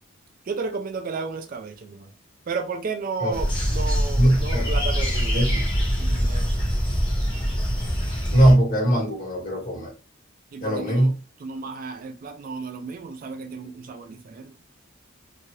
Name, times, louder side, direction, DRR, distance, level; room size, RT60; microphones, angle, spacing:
voice 1, 0.5-2.1 2.5-5.6 6.0-6.6 10.5-11.1 11.4-14.5, right 4 dB, 45° right, 0.3 m, -33 dB
sound 1, 3.3-8.5, equal, 25° left, 1.0 m, -24 dB
voice 2, 4.2-4.7 5.3-5.6 8.3-9.9 10.6-11.1, right 1 dB, 45° left, 1.5 m, -20 dB
2.8 x 2.4 x 3.0 m
head